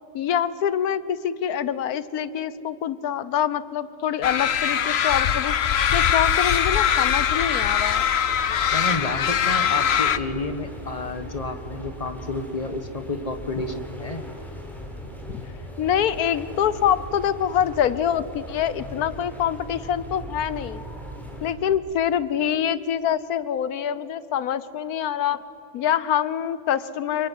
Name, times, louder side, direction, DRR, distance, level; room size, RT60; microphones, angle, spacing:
voice 1, 0.1-5.5 5.9-8.1 15.8-20.8 21.4-25.4 25.7-27.3, left 9 dB, 70° left, 16 dB, 1.3 m, -25 dB
sound 1, 4.2-10.2, left 8 dB, 50° left, 0.9 m, -22 dB
sound 2, 8.3-21.5, equal, ahead, 4.1 m, -39 dB
voice 2, 8.7-14.3, left 2 dB, 25° left, 8 dB, 1.6 m, -30 dB
26.0 x 23.0 x 9.5 m, 2.9 s
omnidirectional pair, 1.6 m